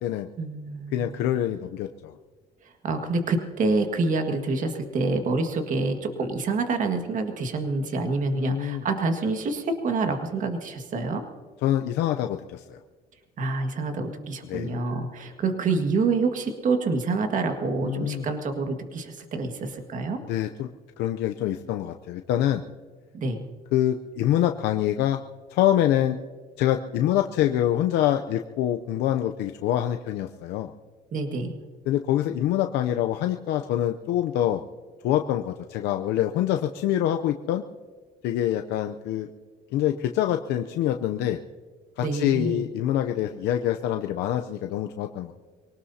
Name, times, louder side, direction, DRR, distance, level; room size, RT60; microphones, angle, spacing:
voice 1, 0.4-1.1 2.8-11.2 13.4-20.2 23.1-23.5 31.1-31.5 42.0-42.6, right 3 dB, 50° right, 5 dB, 1.8 m, -27 dB
voice 2, 0.9-2.1 8.3-8.8 11.6-12.8 14.5-14.7 17.8-18.3 20.3-20.7 21.0-22.6 23.7-25.2 25.5-26.2 26.6-30.7 31.9-34.6 35.0-37.6 38.2-39.3 39.7-41.4 42.0-45.3, left 12 dB, 85° left, 5 dB, 0.6 m, -25 dB
24.0 x 18.5 x 2.8 m, 1.5 s
cardioid pair, 110°, 17 cm